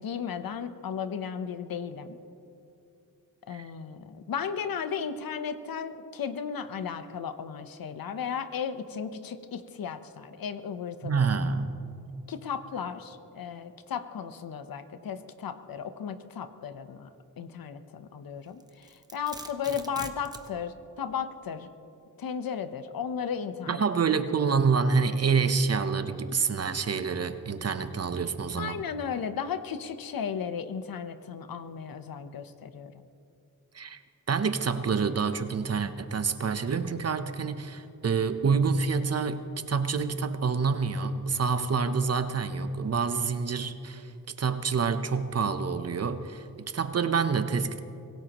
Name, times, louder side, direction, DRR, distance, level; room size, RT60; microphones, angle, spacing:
voice 1, 0.0-2.2 3.5-11.1 12.3-17.1 17.4-21.7 22.2-23.8 28.6-33.1, left 7 dB, 75° left, 10 dB, 1.0 m, -35 dB
voice 2, 11.0-11.8 23.7-28.8 33.7-34.0 34.3-44.1 44.4-47.8, right 5 dB, 45° right, 10 dB, 0.9 m, -27 dB
Domestic sounds home sounds, 18.6-20.5, right 1 dB, 10° right, 1.0 m, -42 dB
25.0 x 17.5 x 3.0 m, 2.6 s
cardioid pair, 85°, 35 cm